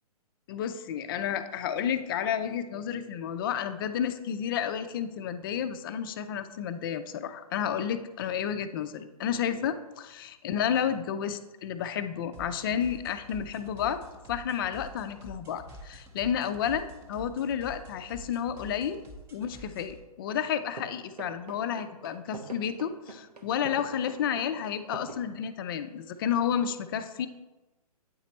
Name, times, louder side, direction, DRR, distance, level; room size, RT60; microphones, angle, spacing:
voice 1, 0.5-14.0 14.3-19.0 19.3-27.3, left 8 dB, 35° left, 10 dB, 0.4 m, -31 dB
sound 1, 12.3-20.0, equal, 15° right, 0.6 m, -47 dB
sound 2, 20.3-20.5 20.8-25.2, right 3 dB, 85° right, 0.9 m, -43 dB
9.1 x 4.1 x 4.0 m, 1.1 s
figure-of-eight pair, 125°, 20 cm